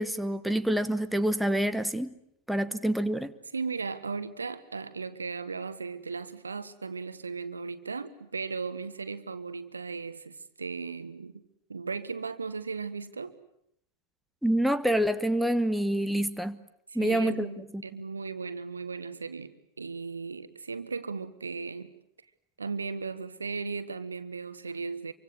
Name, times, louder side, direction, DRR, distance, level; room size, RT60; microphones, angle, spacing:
voice 1, 0.0-2.1 2.5-3.3 14.4-16.6 16.9-17.5 17.7-17.8, right 1 dB, ahead, 1.2 m, -27 dB
voice 2, 3.5-11.4 11.7-13.3 16.9-21.9 22.6-25.1, right 4 dB, 75° right, 1.5 m, -36 dB
27.0 x 24.5 x 8.2 m
figure-of-eight pair, 90°, 0 cm